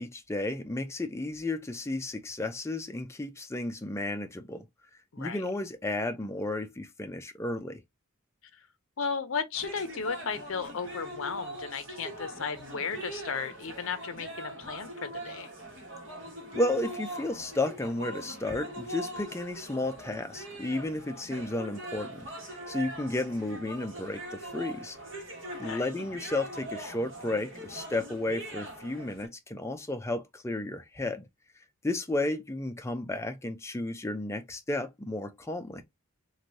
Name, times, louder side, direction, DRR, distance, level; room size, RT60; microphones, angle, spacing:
voice 1, 0.0-4.6 5.2-7.8 16.5-22.3 22.7-25.0 25.6-31.3 31.8-35.8, left 2 dB, 15° left, 0.4 m, -33 dB
voice 2, 5.1-5.4 9.0-15.5 25.6-25.8, left 5 dB, 70° left, 0.6 m, -35 dB
sound 1, 9.5-29.3, right 1 dB, 65° right, 1.3 m, -42 dB
3.2 x 2.6 x 2.7 m
head